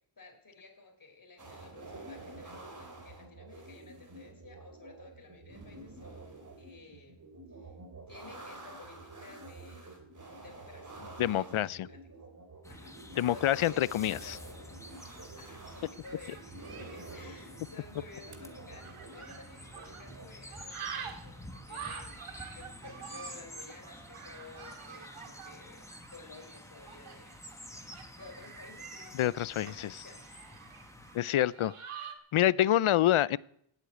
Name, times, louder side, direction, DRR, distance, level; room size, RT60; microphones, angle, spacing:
voice 1, 0.2-7.3 7.5-7.7 8.1-9.9 10.4-12.0 12.7-14.4 15.1-22.3 22.5-27.3 27.9-29.2 29.5-30.4 31.2-31.4, left 3 dB, 40° left, 3 dB, 4.1 m, -53 dB
sound 1, 1.4-20.3, right 2 dB, 35° right, 3.4 m, -49 dB
voice 2, 11.2-11.8 13.2-14.4 29.1-29.9 31.1-31.7 32.3-33.4, left 13 dB, 75° left, 21 dB, 0.6 m, -27 dB
sound 2, 12.6-31.2, left 1 dB, 5° left, 1.3 m, -50 dB
sound 3, 16.0-20.2 20.5-32.1, right 7 dB, 85° right, 2.0 m, -47 dB
16.5 x 8.3 x 9.4 m, 0.73 s
wide cardioid pair, 135°, 50 cm